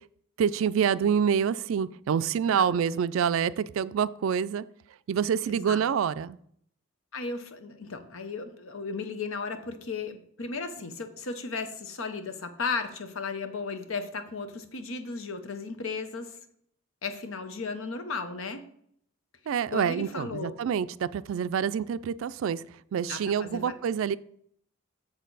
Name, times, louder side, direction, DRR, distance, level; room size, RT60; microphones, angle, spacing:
voice 1, 0.4-4.6 5.1-6.4 19.5-22.6 22.9-24.2, right 7 dB, 75° right, 17 dB, 0.3 m, -27 dB
voice 2, 2.5-2.8 5.5-5.8 7.1-16.4 17.0-18.6 19.7-20.5 23.1-23.8, left 4 dB, 80° left, 9 dB, 0.9 m, -35 dB
7.3 x 6.4 x 4.0 m, 0.66 s
head